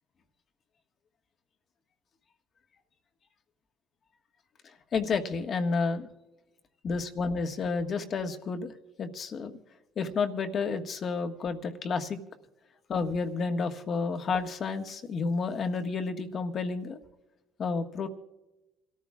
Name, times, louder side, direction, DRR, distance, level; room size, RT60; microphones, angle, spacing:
voice 1, 4.9-6.1 6.8-8.7 9.0-9.6 10.0-12.2 12.9-17.0 17.6-18.1, left 4 dB, 50° left, 6 dB, 1.5 m, -30 dB
27.5 x 14.0 x 2.4 m, 0.99 s
supercardioid pair, 80°, 0 cm